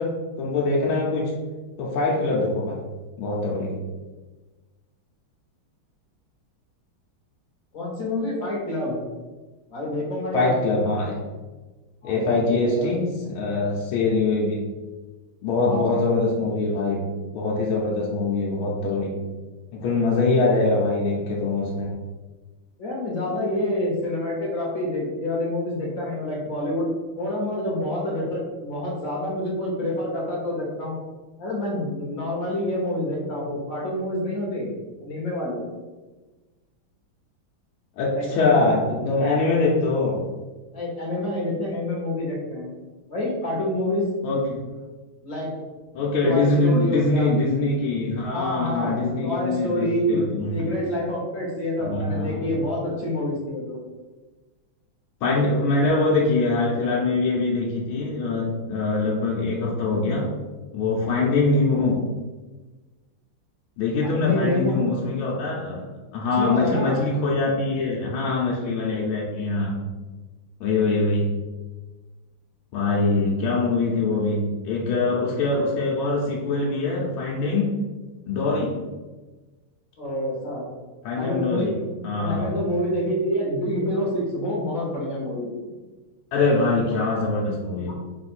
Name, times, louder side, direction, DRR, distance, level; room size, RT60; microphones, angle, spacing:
voice 1, 0.0-1.3 1.8-2.8 3.2-3.7 10.3-11.2 12.0-14.6 15.4-19.2 19.7-22.0 38.0-40.2 44.2-44.7 45.9-50.5 51.8-52.4 55.2-60.3 60.7-62.0 63.8-65.9 66.1-69.8 70.6-71.3 72.7-77.7 78.3-78.8 81.0-81.7 82.0-82.5 86.3-87.9, left 3 dB, 85° left, -4 dB, 1.5 m, -23 dB
voice 2, 7.7-9.0 9.7-10.5 12.0-12.9 15.7-16.0 22.8-26.9 27.2-30.9 31.4-34.7 35.0-35.6 38.1-38.6 40.7-42.7 43.1-44.1 45.2-45.5 46.2-47.3 48.3-48.9 49.2-50.2 50.5-53.8 64.0-64.8 66.2-67.0 80.0-80.7 81.1-81.8 82.2-85.7 87.9-88.0, left 1 dB, 45° left, -4 dB, 1.4 m, -27 dB
4.0 x 2.5 x 4.3 m, 1.3 s
omnidirectional pair, 2.3 m